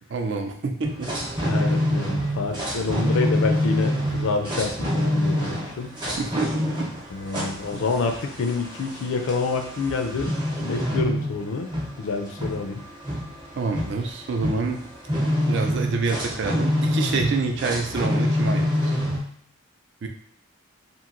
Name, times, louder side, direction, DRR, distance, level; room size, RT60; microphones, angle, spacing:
voice 1, 0.1-1.1 6.2-6.9 13.6-14.9 15.5-18.9 20.0-20.1, right 4 dB, 55° right, 4 dB, 0.4 m, -27 dB
sound 1, 0.8-19.2, left 1 dB, 20° right, 0.7 m, -26 dB
voice 2, 1.4-5.9 7.1-10.3 10.6-11.7 12.0-12.8, left 4 dB, 70° left, 4 dB, 0.4 m, -27 dB
2.9 x 2.6 x 2.5 m, 0.65 s
head